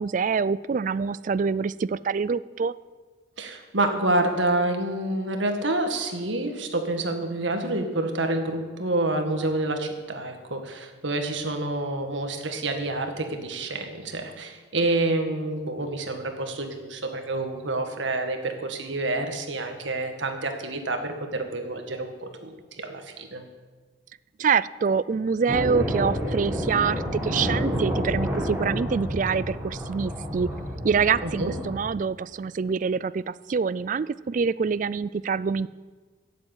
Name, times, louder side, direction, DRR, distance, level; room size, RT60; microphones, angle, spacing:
voice 1, 0.0-2.7 24.4-30.5 30.8-35.7, right 5 dB, 40° right, 18 dB, 0.3 m, -25 dB
voice 2, 3.4-23.4 31.2-31.5, right 2 dB, 75° right, 5 dB, 1.7 m, -28 dB
sound 1, 25.5-31.8, equal, 10° right, 2.2 m, -29 dB
12.0 x 7.8 x 8.9 m, 1.4 s
head